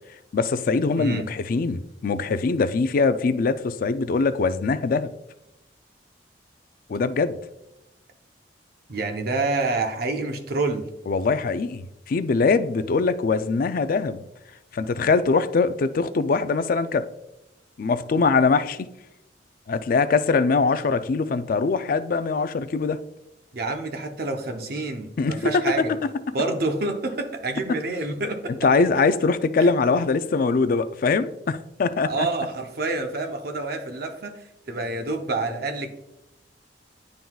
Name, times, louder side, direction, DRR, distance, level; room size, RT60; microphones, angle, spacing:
voice 1, 0.3-5.1 6.9-7.4 11.1-14.2 14.7-17.1 17.8-18.9 19.7-23.0 25.2-25.4 28.6-32.3, left 4 dB, 50° left, 0.4 m, -22 dB
voice 2, 8.9-10.9 23.5-26.0 26.3-28.6 29.6-29.7 32.1-35.9, right 3 dB, 55° right, 0.7 m, -28 dB
10.5 x 3.9 x 2.3 m
head